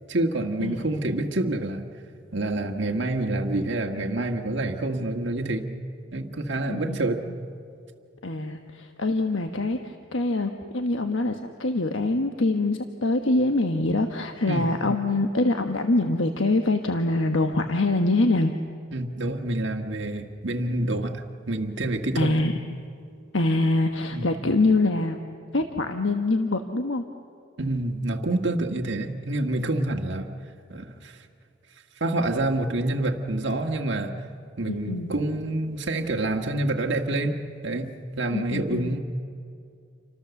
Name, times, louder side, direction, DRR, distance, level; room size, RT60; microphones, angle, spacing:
voice 1, 0.1-1.8 2.3-5.7 6.1-7.2 14.5-14.7 18.9-22.5 24.1-24.3 27.6-30.3 30.7-31.2 32.0-34.1 34.6-37.4 37.6-37.9 38.2-39.0, right 2 dB, 65° right, 2 dB, 1.6 m, -27 dB
voice 2, 6.7-7.3 8.2-18.5 22.2-22.6 23.3-25.2 25.5-27.1 34.7-35.1 38.3-39.0, left 2 dB, 80° left, 5 dB, 1.2 m, -24 dB
29.5 x 25.5 x 7.1 m, 2.4 s
head